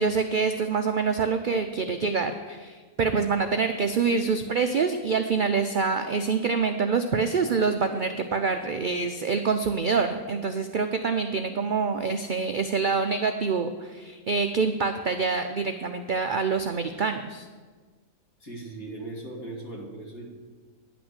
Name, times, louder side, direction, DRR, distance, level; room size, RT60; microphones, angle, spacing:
voice 1, 0.0-17.5, right 5 dB, 75° right, 7 dB, 0.4 m, -26 dB
voice 2, 18.4-20.2, right 2 dB, 75° left, -2 dB, 2.7 m, -38 dB
10.5 x 6.1 x 8.0 m, 1.4 s
omnidirectional pair, 1.5 m